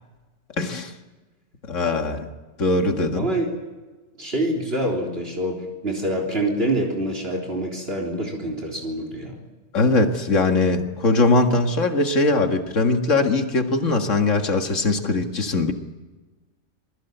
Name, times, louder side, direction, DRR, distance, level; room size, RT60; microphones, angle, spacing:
voice 1, 0.6-0.9 1.7-2.3 2.6-3.3 9.7-15.7, left 3 dB, 85° left, 5 dB, 2.3 m, -21 dB
voice 2, 3.2-3.5 4.2-9.4, right 1 dB, 55° right, 2 dB, 4.0 m, -26 dB
28.0 x 20.5 x 8.1 m, 1.2 s
omnidirectional pair, 1.3 m